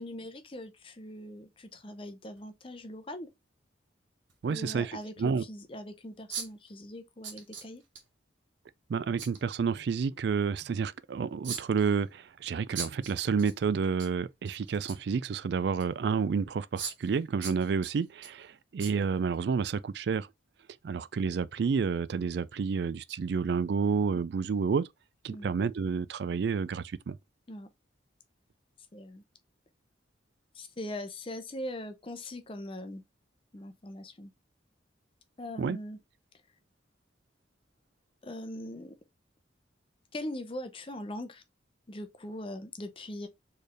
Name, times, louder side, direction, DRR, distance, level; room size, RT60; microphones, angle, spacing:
voice 1, 0.0-3.3 4.5-7.8 25.3-25.5 27.5-27.7 28.9-29.2 30.5-33.0 33.5-34.3 35.4-36.0 38.2-39.0 40.1-41.4 41.9-43.3, left 1 dB, 30° left, 0.6 m, -41 dB
sound 1, 2.4-2.5 4.3-4.4 5.0-5.1 6.3-6.7 7.2-8.0 9.2-9.4 11.4-11.9 12.8-13.5 13.8-14.1 14.5-15.1 15.8-15.9 16.8-17.2 17.4-18.3 18.8-18.9 19.3-19.4, right 6 dB, 85° right, 1.4 m, -39 dB
voice 2, 4.4-4.9 5.2-5.4 8.9-20.3 20.8-24.9 25.2-27.2 35.6-35.8, right 5 dB, 55° right, 0.3 m, -30 dB
4.4 x 3.3 x 3.2 m
head